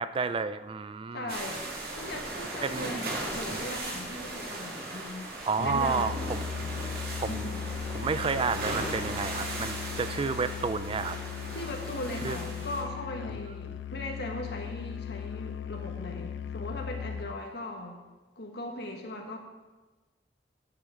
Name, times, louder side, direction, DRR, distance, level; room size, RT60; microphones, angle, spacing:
voice 1, 0.0-1.3 2.6-3.1 5.5-6.4 7.2-7.5 7.9-11.2 12.2-12.4 13.3-13.4, right 5 dB, 30° right, 13 dB, 0.4 m, -31 dB
voice 2, 1.1-1.7 2.0-5.3 5.6-6.1 7.3-7.7 11.5-18.0 18.4-19.4, left 1 dB, 65° left, 2 dB, 1.7 m, -39 dB
sound 1, 1.3-12.8, right 2 dB, 60° right, 2.2 m, -37 dB
Musical instrument, 5.6-17.4, left 7 dB, 85° left, 0.3 m, -38 dB
14.0 x 8.4 x 3.8 m, 1.2 s
head